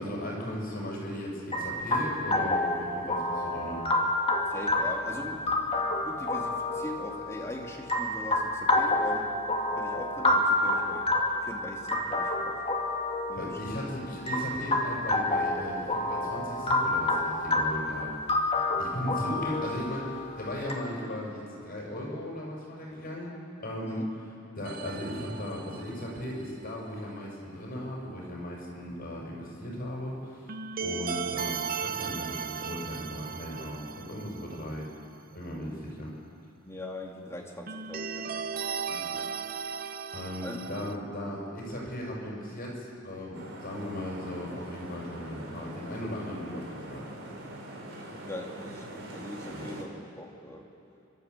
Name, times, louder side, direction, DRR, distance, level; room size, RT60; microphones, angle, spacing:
voice 1, 0.0-3.9 13.4-23.3 23.6-24.0 24.5-30.5 30.8-34.9 35.3-36.1 39.0-39.1 40.1-47.1 49.5-49.7, left 1 dB, 45° left, -3 dB, 6.8 m, -37 dB
sound 1, 1.5-20.7, left 2 dB, 30° left, 2.4 m, -29 dB
voice 2, 4.5-9.4 9.7-11.1 11.4-12.6 13.3-13.6 18.7-18.8 23.9-24.1 36.6-39.3 40.4-40.6 48.3-49.9 50.2-50.6, left 1 dB, 15° left, 0 dB, 2.5 m, -41 dB
sound 2, 24.7-26.5 30.5-34.9 35.1-35.2 37.7-40.9, right 6 dB, 45° right, 0.7 m, -36 dB
sound 3, 43.3-49.8, right 1 dB, 85° right, 3.8 m, -43 dB
29.5 x 13.0 x 8.3 m, 2.7 s
head